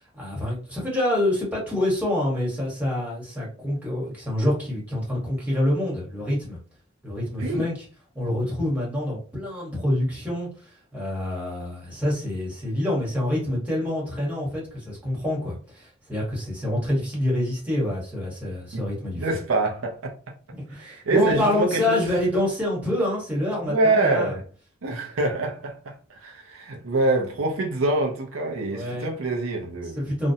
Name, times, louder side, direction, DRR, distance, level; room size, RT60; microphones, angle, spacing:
voice 1, 0.1-6.6 7.0-7.7 8.1-10.5 10.9-19.4 20.5-24.3 28.7-29.1 30.0-30.3, left 1 dB, 5° right, 1.1 m, -26 dB
voice 2, 19.1-20.1 20.7-22.1 23.6-24.5 24.8-30.0, right 2 dB, 90° right, 0.6 m, -25 dB
2.5 x 2.1 x 2.7 m
head